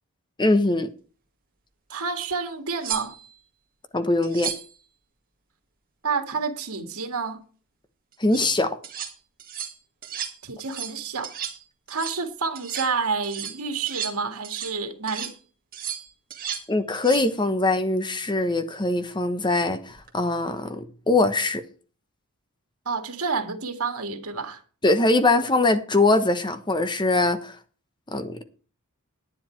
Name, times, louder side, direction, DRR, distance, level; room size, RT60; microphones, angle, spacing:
voice 1, 0.4-0.9 3.9-4.5 8.2-8.8 16.7-21.6 24.8-27.6 28.1-28.4, left 2 dB, 20° left, 1.1 m, -22 dB
voice 2, 1.9-3.1 6.0-7.4 10.4-11.3 11.9-15.3 22.9-24.6, right 4 dB, 90° right, 2.0 m, -29 dB
sound 1, 2.2-2.3 2.8-3.4 4.2-4.8 8.1-8.5 8.8-9.1 9.4-9.8 10.0-10.4 10.6-11.0 11.2-11.6 11.9-12.2 12.6-12.9 13.2-14.8 15.1-15.4 15.7-16.7 16.9-17.3 19.9-20.1, right 9 dB, 40° right, 1.8 m, -34 dB
10.5 x 9.8 x 4.6 m
head